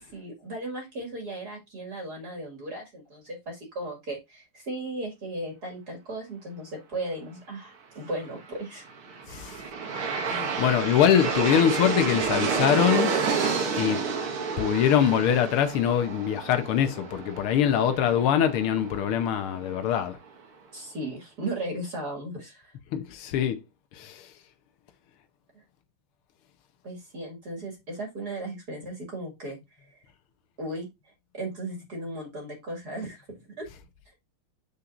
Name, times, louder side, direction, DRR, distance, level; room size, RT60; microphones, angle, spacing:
voice 1, 0.1-8.8 10.4-10.7 20.7-22.7 25.5-25.6 26.8-29.6 29.9-30.0 30.6-30.9 31.3-33.7, right 1 dB, 50° right, 2.7 m, -36 dB
Aircraft, 8.9-19.9, right 5 dB, 90° right, 2.4 m, -30 dB
voice 2, 9.3-9.6 10.3-13.1 13.8-14.0 14.6-20.2 22.9-23.6 23.9-24.3, left 9 dB, 90° left, 1.9 m, -23 dB
7.4 x 6.9 x 2.5 m
omnidirectional pair, 2.3 m